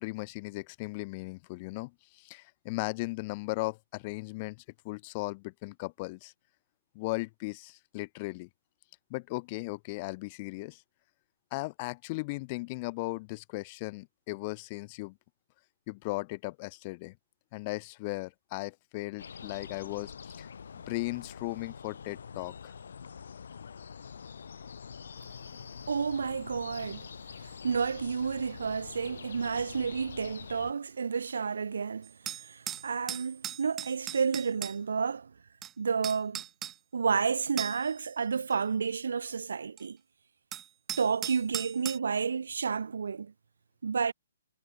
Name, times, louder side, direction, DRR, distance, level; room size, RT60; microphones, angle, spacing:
voice 1, 0.0-6.3 6.9-8.5 9.1-10.8 11.5-15.2 15.9-17.1 17.5-20.5 20.9-22.7, left 25 dB, 30° left, 1.4 m, -37 dB
sound 1, 19.2-30.7, left 6 dB, 70° left, 3.0 m, -45 dB
voice 2, 25.9-27.1 27.6-35.3 35.8-36.4 36.9-40.0 41.0-43.3 43.8-44.1, right 5 dB, 70° right, 0.7 m, -31 dB
sound 2, 32.0-34.8 35.6-35.7 36.0-36.7 37.6-38.0 38.5-38.6 39.8-39.9 40.5-42.0, right 11 dB, 15° right, 1.9 m, -38 dB
hypercardioid pair, 140°, 0 cm